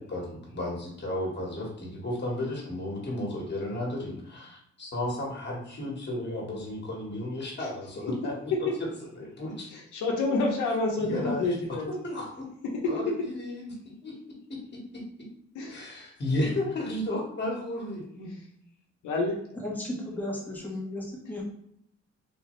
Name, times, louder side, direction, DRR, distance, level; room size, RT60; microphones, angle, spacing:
voice 1, 0.0-8.9 9.1-9.7 11.0-11.4 11.7-12.5 12.8-13.7 14.0-14.1 15.7-18.3, left 1 dB, 35° left, -2 dB, 1.5 m, -33 dB
voice 2, 9.7-11.8 15.5-15.7 19.0-19.4, left 3 dB, 80° left, -1 dB, 0.8 m, -28 dB
voice 3, 19.5-21.4, left 1 dB, 5° left, -4 dB, 1.1 m, -35 dB
3.5 x 2.6 x 3.1 m, 0.71 s
cardioid pair, 90°, 30 cm